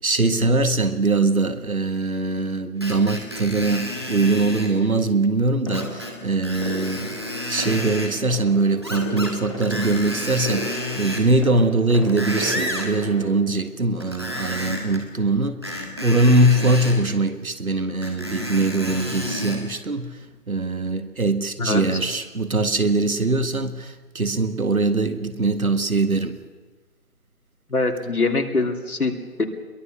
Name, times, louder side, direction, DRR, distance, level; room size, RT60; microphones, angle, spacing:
voice 1, 0.0-7.2 7.5-26.4, right 2 dB, 70° right, 1.9 m, -22 dB
Screech, 2.8-4.7 5.7-6.1 6.4-8.1 8.8-9.3 9.6-11.3 11.8-12.9 14.0-15.0 15.6-17.0 18.0-19.6 20.2-20.3, left 1 dB, 15° right, 1.6 m, -31 dB
sound 1, 5.7-13.3, equal, 20° left, 2.1 m, -36 dB
voice 2, 27.7-29.4, left 3 dB, 75° left, 3.0 m, -23 dB
22.5 x 20.5 x 6.8 m
figure-of-eight pair, 180°, 45 cm